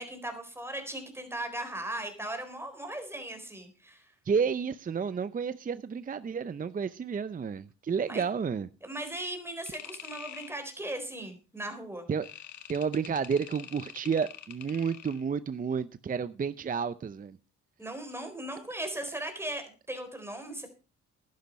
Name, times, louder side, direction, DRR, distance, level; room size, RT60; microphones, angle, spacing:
voice 1, 0.0-4.1 8.1-8.2 8.8-12.1 17.8-20.7, right 1 dB, 10° right, 4.0 m, -38 dB
voice 2, 4.3-8.7 12.1-12.3 12.7-17.4, right 6 dB, 30° right, 0.6 m, -31 dB
sound 1, 9.7-10.5 12.2-15.2, left 10 dB, 70° left, 1.7 m, -45 dB
11.5 x 10.5 x 5.2 m
cardioid pair, 90°, 30 cm